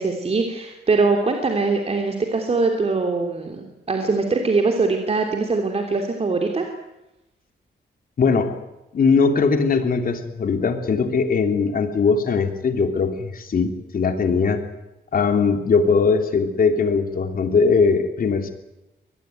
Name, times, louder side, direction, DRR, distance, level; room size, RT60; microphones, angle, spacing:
voice 1, 0.0-6.7, right 3 dB, 35° right, 3 dB, 3.0 m, -22 dB
voice 2, 8.2-8.5 8.9-14.6 15.1-18.5, left 5 dB, 55° left, 7 dB, 3.2 m, -20 dB
24.5 x 19.5 x 9.3 m, 0.95 s
wide cardioid pair, 140°, 18 cm